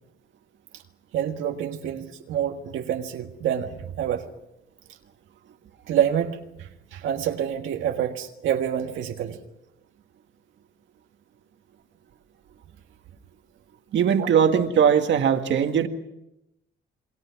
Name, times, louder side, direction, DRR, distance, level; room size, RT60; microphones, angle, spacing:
voice 1, 1.1-4.2 5.9-9.4 14.2-14.3, right 9 dB, 85° right, 3 dB, 1.7 m, -27 dB
voice 2, 13.9-15.9, right 8 dB, 65° right, 6 dB, 1.9 m, -20 dB
28.0 x 21.5 x 6.0 m, 0.89 s
cardioid pair, 90°, 20 cm